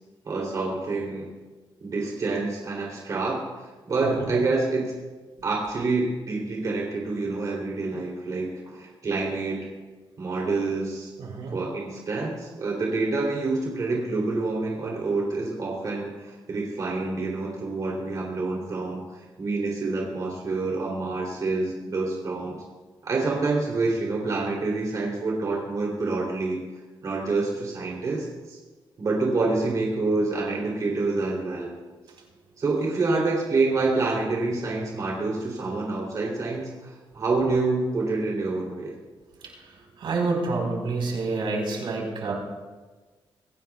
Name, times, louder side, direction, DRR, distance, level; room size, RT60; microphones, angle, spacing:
voice 1, 0.2-1.3 1.8-4.9 5.4-9.6 10.2-11.1 11.5-22.6 23.0-26.6 27.0-28.6 29.0-31.7 32.6-38.9, right 3 dB, 45° right, -3 dB, 3.1 m, -27 dB
voice 2, 11.2-11.6 39.4-42.3, right 3 dB, 70° right, 0 dB, 4.2 m, -28 dB
24.5 x 17.0 x 2.3 m, 1.3 s
wide cardioid pair, 175°, 9 cm